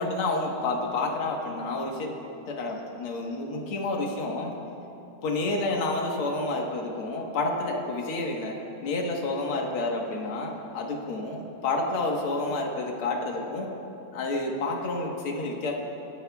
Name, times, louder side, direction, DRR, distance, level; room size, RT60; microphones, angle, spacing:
voice 1, 0.0-2.1 2.5-4.5 5.2-8.6 8.8-13.7 14.1-15.7, left 2 dB, 60° left, 0 dB, 1.4 m, -29 dB
25.0 x 14.5 x 2.3 m, 2.9 s
omnidirectional pair, 4.2 m